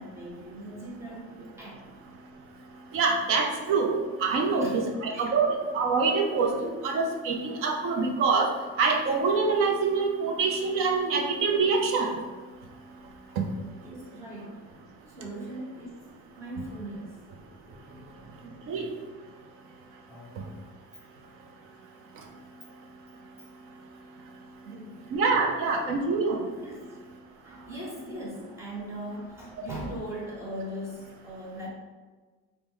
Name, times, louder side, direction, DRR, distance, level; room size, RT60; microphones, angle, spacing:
voice 1, 0.0-1.8 4.4-5.3 13.3-13.4 13.8-14.6 15.0-16.0 16.4-17.2 17.6-18.9 20.1-20.6 24.1-24.3 24.6-24.9 25.3-25.5 26.6-27.0 27.4-31.7, right 1 dB, 10° right, -6 dB, 0.8 m, -40 dB
voice 2, 2.9-3.9 4.2-8.5 8.8-12.2 13.4-13.5 18.7-18.9 25.1-26.4, right 4 dB, 45° right, 2 dB, 0.5 m, -25 dB
3.6 x 2.1 x 4.4 m, 1.4 s
cardioid pair, 180°, 31 cm